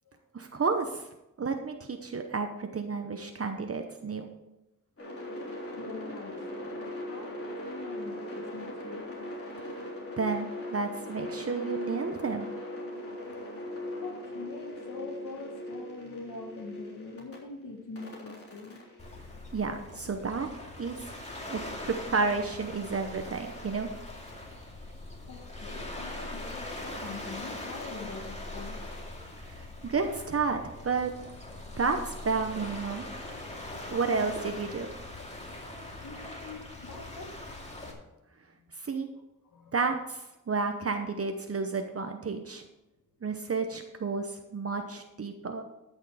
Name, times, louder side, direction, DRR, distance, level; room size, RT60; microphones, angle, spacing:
voice 1, 0.3-1.1 1.4-4.3 10.2-12.5 19.5-20.5 20.8-20.9 21.5-23.9 29.4-31.1 31.8-33.0 33.9-34.9 38.8-39.1 39.7-42.6 43.2-45.6, right 4 dB, 45° right, 5 dB, 0.9 m, -31 dB
sound 1, 5.0-17.4 18.0-20.1, left 1 dB, 45° left, 3.5 m, -40 dB
voice 2, 5.8-9.1 9.4-9.5 14.0-18.8 25.3-28.8 35.1-35.6 36.0-37.8 39.4-39.7 44.7-44.9 45.4-45.6, left 4 dB, 65° left, 3 dB, 1.7 m, -44 dB
Waves surf, 19.0-37.9, left 1 dB, 20° left, 2.4 m, -41 dB
12.5 x 6.5 x 4.9 m, 0.95 s
wide cardioid pair, 90°, 33 cm